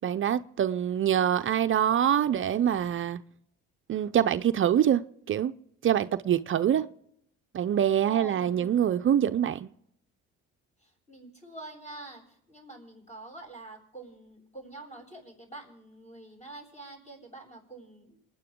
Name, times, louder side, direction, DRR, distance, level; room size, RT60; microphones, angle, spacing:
voice 1, 0.0-3.2 3.9-5.0 5.3-5.5 5.8-6.8 7.5-9.7, right 10 dB, 40° right, 0.6 m, -25 dB
voice 2, 8.0-8.9 10.8-18.2, right 2 dB, 20° left, 7.6 m, -46 dB
27.5 x 10.0 x 3.7 m
supercardioid pair, 80°, 31 cm